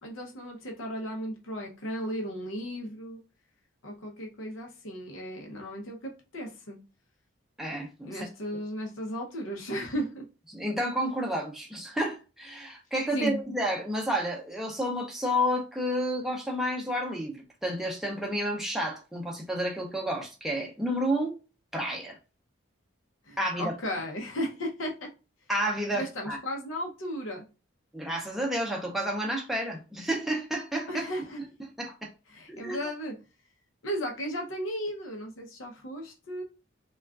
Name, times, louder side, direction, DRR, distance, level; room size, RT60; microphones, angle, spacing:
voice 1, 0.0-3.2 3.8-6.8 8.1-10.2 13.1-13.4 23.3-25.1 25.9-27.4 30.9-31.4 32.3-33.2 33.8-36.4, equal, 85° left, 0.7 m, -35 dB
voice 2, 7.6-8.3 10.5-21.3 21.7-22.2 23.4-23.8 25.5-26.4 27.9-31.1 31.8-32.1 32.5-32.8, equal, ahead, 0.5 m, -30 dB
3.5 x 2.3 x 2.3 m
head